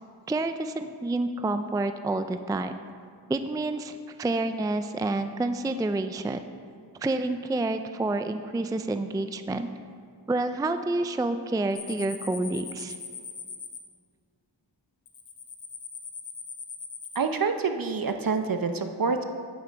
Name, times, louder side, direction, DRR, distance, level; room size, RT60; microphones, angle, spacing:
voice 1, 0.3-2.7 3.3-6.4 7.0-9.7 10.3-13.0, right 2 dB, 10° right, 9 dB, 0.4 m, -28 dB
sound 1, 11.8-13.8 15.1-17.2, left 6 dB, 80° left, 1.1 m, -40 dB
voice 2, 17.1-19.2, right 4 dB, 50° right, 7 dB, 0.9 m, -27 dB
10.5 x 8.8 x 4.7 m, 2.2 s
wide cardioid pair, 70°, 44 cm